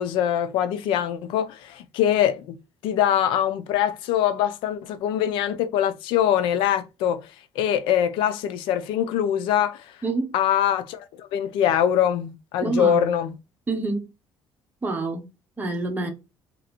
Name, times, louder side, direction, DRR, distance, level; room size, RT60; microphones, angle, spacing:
voice 1, 0.0-2.6 2.8-7.3 7.6-9.9 10.3-13.3, left 10 dB, 85° left, 0.5 m, -23 dB
voice 2, 10.0-10.3 12.6-13.0 13.7-14.0 14.8-15.3 15.6-16.1, right 2 dB, 20° right, 1.1 m, -26 dB
3.3 x 2.6 x 4.3 m
cardioid pair, 110°, 8 cm